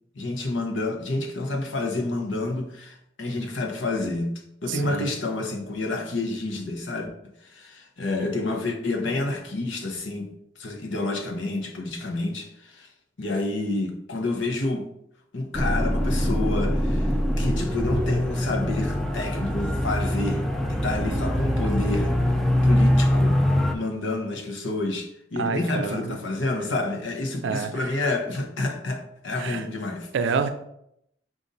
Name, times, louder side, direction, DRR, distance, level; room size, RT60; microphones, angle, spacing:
voice 1, 0.1-4.3 4.6-7.1 7.4-10.3 10.6-12.9 13.2-14.9 15.3-20.4 20.7-22.1 22.6-23.4 23.7-30.1, left 2 dB, 85° left, 3 dB, 0.8 m, -29 dB
voice 2, 4.7-5.1 25.4-26.2 27.4-27.7 29.4-29.6 30.1-30.5, right 5 dB, 80° right, 9 dB, 0.4 m, -27 dB
sound 1, 15.5-23.8, equal, ahead, 0.3 m, -23 dB
5.2 x 2.5 x 4.0 m, 0.77 s
head